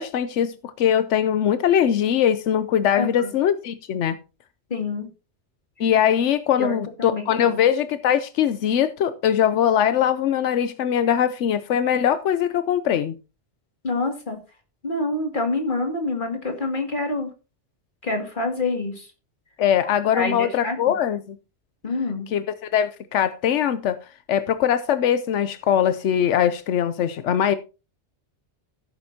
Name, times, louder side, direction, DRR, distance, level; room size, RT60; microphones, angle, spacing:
voice 1, 0.0-4.2 5.8-13.1 19.6-21.4 22.3-24.0 24.3-27.5, left 9 dB, 90° left, 1.0 m, -21 dB
voice 2, 2.9-3.3 4.7-5.1 6.6-7.6 13.8-14.4 14.8-17.3 18.0-19.1 20.1-20.8 21.8-22.3, left 3 dB, 45° left, 2.4 m, -27 dB
15.0 x 8.5 x 2.8 m
omnidirectional pair, 1.2 m